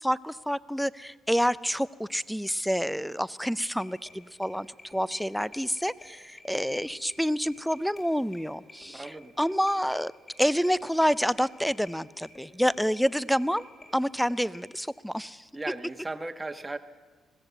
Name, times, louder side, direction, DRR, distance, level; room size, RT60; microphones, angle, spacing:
voice 1, 0.0-4.7 4.9-9.1 9.4-10.1 10.4-13.7 13.9-15.5, equal, ahead, 19 dB, 0.6 m, -28 dB
sound 1, 3.7-14.6, left 2 dB, 35° left, 7.3 m, -52 dB
voice 2, 8.9-9.3 15.5-16.8, right 2 dB, 20° right, 9 dB, 1.3 m, -36 dB
21.0 x 16.0 x 8.1 m, 1.5 s
cardioid pair, 90°, 0 cm